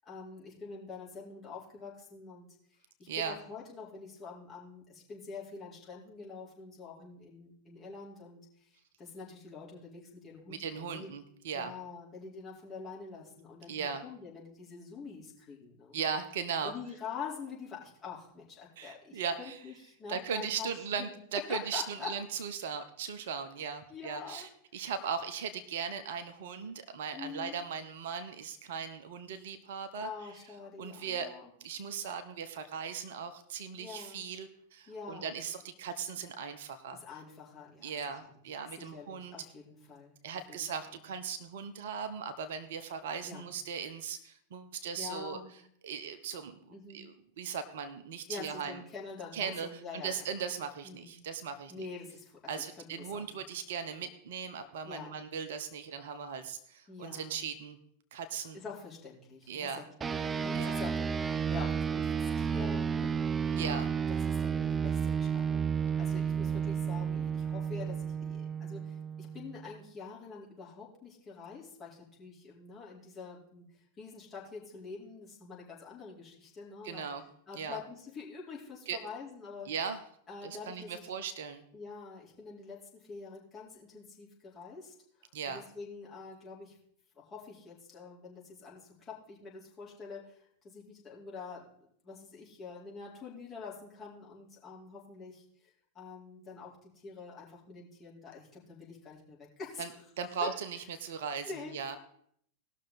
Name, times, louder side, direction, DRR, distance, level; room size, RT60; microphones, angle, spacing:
voice 1, 0.0-11.1 11.5-16.0 16.6-20.7 21.0-21.2 21.5-22.1 23.9-24.5 24.7-24.9 27.1-27.6 30.0-31.5 33.8-34.2 34.9-35.4 36.9-38.0 38.2-38.3 38.7-40.1 40.5-41.0 43.2-43.4 45.0-45.5 46.7-47.0 48.3-50.3 50.8-51.2 51.7-53.4 54.8-55.1 56.9-57.5 58.5-77.1 77.5-79.7 80.3-81.1 81.7-86.8 87.1-99.8 100.4-100.5 101.4-101.7, left 5 dB, 25° left, -5 dB, 4.2 m, -46 dB
voice 2, 10.6-11.7 13.7-14.0 15.9-16.7 18.8-19.6 20.1-30.1 30.8-31.3 31.6-37.0 37.8-39.3 40.2-45.4 45.8-46.6 46.9-48.8 49.3-51.9 52.5-57.8 58.1-58.6 59.5-59.8 60.5-60.8 63.5-63.9 76.8-77.2 77.6-77.8 78.9-79.0 79.7-80.0 80.4-81.6 85.3-85.6 99.8-99.9 100.2-102.0, right 6 dB, 55° right, 9 dB, 0.9 m, -38 dB
sound 1, 60.0-69.7, right 7 dB, 20° right, 0.4 m, -32 dB
18.5 x 6.4 x 4.2 m, 0.67 s
figure-of-eight pair, 90°, 0 cm